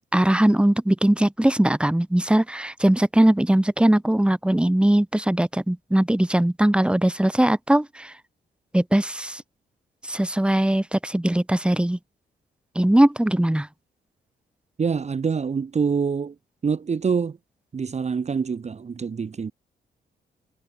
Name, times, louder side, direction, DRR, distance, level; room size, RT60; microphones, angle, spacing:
voice 1, 0.1-8.1 8.7-9.4 10.1-12.0 12.8-13.7, right 1 dB, 5° right, 2.4 m, -20 dB
voice 2, 14.8-16.3 16.6-17.4 17.7-19.5, right 5 dB, 35° right, 1.6 m, -25 dB
cardioid pair, 115°, 19 cm